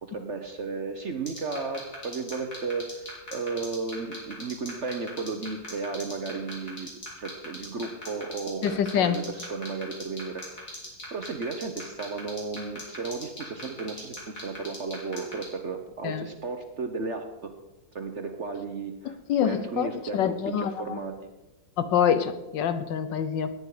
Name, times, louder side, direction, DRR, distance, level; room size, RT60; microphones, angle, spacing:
voice 1, 0.0-6.9 7.2-10.8 11.1-17.5 17.9-21.1, right 4 dB, 50° right, 6 dB, 1.1 m, -34 dB
sound 1, 1.3-15.4, left 1 dB, 45° left, 4.2 m, -39 dB
voice 2, 8.6-9.2 16.0-16.3 19.3-21.0 21.8-23.5, left 8 dB, 75° left, 11 dB, 1.4 m, -26 dB
18.0 x 9.4 x 4.9 m, 1.1 s
omnidirectional pair, 2.0 m